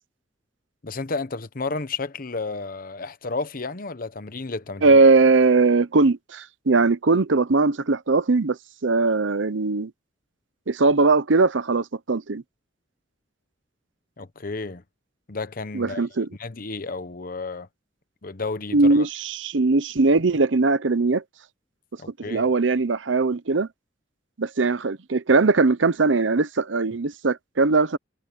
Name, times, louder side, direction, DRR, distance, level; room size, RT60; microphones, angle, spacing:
voice 1, 0.8-5.0 14.2-14.8 15.3-16.1 16.4-17.7 18.2-19.1 22.0-22.4, left 3 dB, 50° left, 1.0 m, -32 dB
voice 2, 4.8-8.6 8.8-9.9 10.7-12.4 15.7-16.3 18.7-21.2 22.2-23.7 24.4-28.0, right 3 dB, 80° right, 0.8 m, -20 dB
head